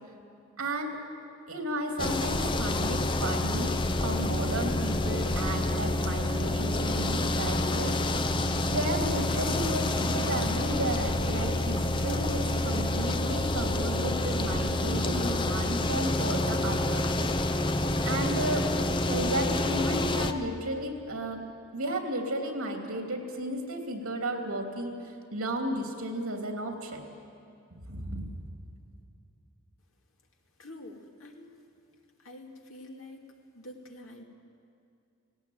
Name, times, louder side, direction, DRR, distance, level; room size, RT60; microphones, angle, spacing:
voice 1, 0.6-1.0 1.5-8.3 8.7-17.1 18.0-18.7 19.1-21.4 21.7-25.0 25.3-27.0 27.7-28.4, right 1 dB, 85° right, 3 dB, 2.9 m, -33 dB
sound 1, 2.0-20.3, left 2 dB, 25° left, 0.6 m, -28 dB
voice 2, 30.6-31.5 32.2-33.2 33.5-34.2, left 1 dB, 70° left, 1 dB, 2.4 m, -46 dB
18.5 x 17.5 x 9.3 m, 2.6 s
head